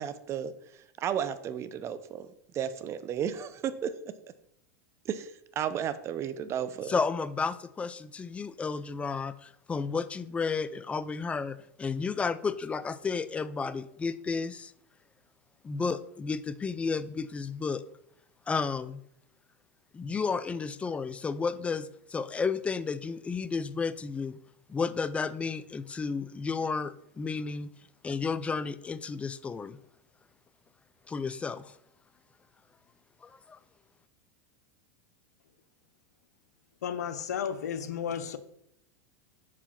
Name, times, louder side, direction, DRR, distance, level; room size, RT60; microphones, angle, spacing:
voice 1, 0.0-3.9 5.0-6.9, right 9 dB, 35° right, 0.6 m, -34 dB
voice 2, 6.9-14.7 15.6-17.8 18.5-19.0 19.9-24.4 24.7-27.7 28.0-29.8 31.1-31.7 33.2-33.6, left 5 dB, 15° left, 0.3 m, -32 dB
voice 3, 36.8-38.4, left 8 dB, 90° left, 0.6 m, -33 dB
5.0 x 4.9 x 5.7 m
hypercardioid pair, 120°, 9 cm